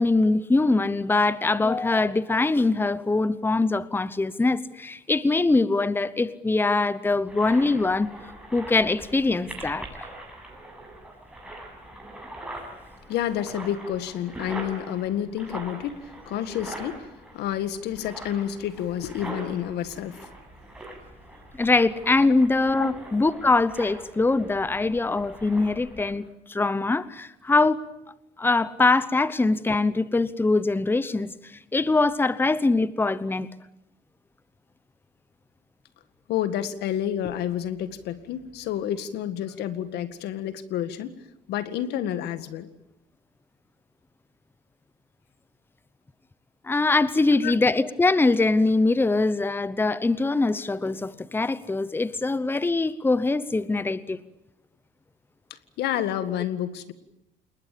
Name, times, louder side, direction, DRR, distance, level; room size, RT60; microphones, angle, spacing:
voice 1, 0.0-8.1 8.5-10.0 21.6-27.8 28.4-31.3 31.7-33.5 46.6-54.2, left 3 dB, 10° left, 16 dB, 1.0 m, -23 dB
sound 1, 7.3-26.1, right 1 dB, 5° right, 7.8 m, -42 dB
voice 2, 13.1-17.1 17.3-20.3 22.2-22.3 22.8-23.1 36.3-41.1 41.5-42.7 47.4-47.5 55.8-56.9, left 10 dB, 80° left, 12 dB, 2.0 m, -29 dB
28.0 x 21.0 x 8.6 m, 0.83 s
cardioid pair, 110°, 17 cm